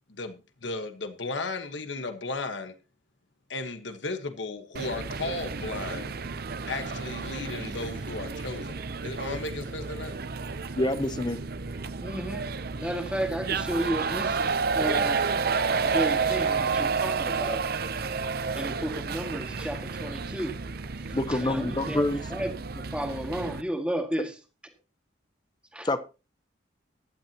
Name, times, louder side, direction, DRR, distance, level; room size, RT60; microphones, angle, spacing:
voice 1, 0.1-2.7 3.5-6.1 6.7-10.1, left 3 dB, 75° left, 1.4 m, -35 dB
sound 1, 4.8-23.6, right 5 dB, 55° right, 0.7 m, -31 dB
voice 2, 10.8-11.4 21.1-22.2 25.8-26.0, left 1 dB, 25° left, 0.8 m, -26 dB
voice 3, 12.0-12.5 12.7-15.3 15.8-17.7 18.5-20.6 21.1-24.3 25.7-25.9, right 1 dB, 5° right, 2.0 m, -33 dB
16.0 x 12.0 x 2.9 m
head